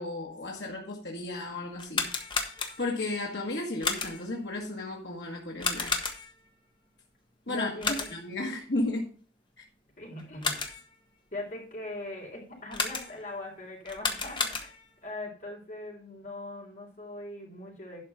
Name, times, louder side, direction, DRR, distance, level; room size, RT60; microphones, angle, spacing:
voice 1, 0.0-2.1 2.8-5.9 7.5-9.1, left 2 dB, 85° left, -1 dB, 1.8 m, -34 dB
sound 1, 1.7-3.0 3.8-4.4 5.6-6.5 7.8-8.4 10.2-10.9 12.7-13.3 13.8-15.0, left 4 dB, 25° left, 1.4 m, -32 dB
voice 2, 7.4-8.4 10.0-10.8 11.3-14.7 15.0-18.0, left 1 dB, 50° left, -2 dB, 4.0 m, -40 dB
11.5 x 4.8 x 5.7 m, 0.40 s
head